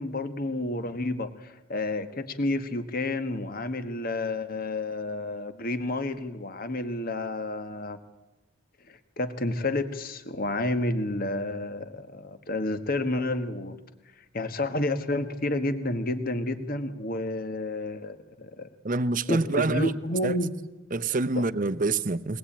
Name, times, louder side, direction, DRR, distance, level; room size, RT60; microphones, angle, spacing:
voice 1, 0.0-8.0 8.9-13.8 14.3-18.7 19.3-20.5 21.3-21.4, left 2 dB, 40° left, 1.4 m, -30 dB
voice 2, 18.8-19.9 20.2-20.4 20.9-22.4, right 3 dB, 40° right, 0.8 m, -26 dB
21.5 x 19.5 x 8.7 m
head